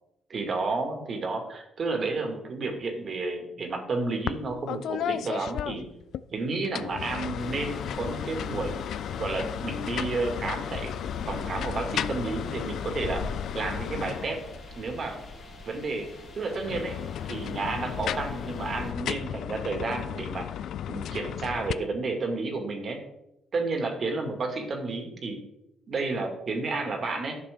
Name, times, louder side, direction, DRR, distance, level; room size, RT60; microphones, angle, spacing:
voice 1, 0.3-5.9 6.3-8.8 9.1-10.9 11.3-13.3 13.5-14.4 14.8-15.2 15.7-16.1 16.3-20.5 20.9-23.0 23.5-25.4 25.9-27.4, right 3 dB, 50° right, 4 dB, 2.1 m, -31 dB
sound 1, 4.3-4.4 4.7-6.2 6.6-14.7 16.5-21.7, left 10 dB, 70° left, 0.3 m, -34 dB
sound 2, 7.0-21.6, right 9 dB, 80° right, 2.6 m, -54 dB
sound 3, 7.4-18.9, left 4 dB, 45° left, 1.1 m, -43 dB
11.5 x 6.7 x 3.6 m, 0.87 s
cardioid pair, 90°, 0 cm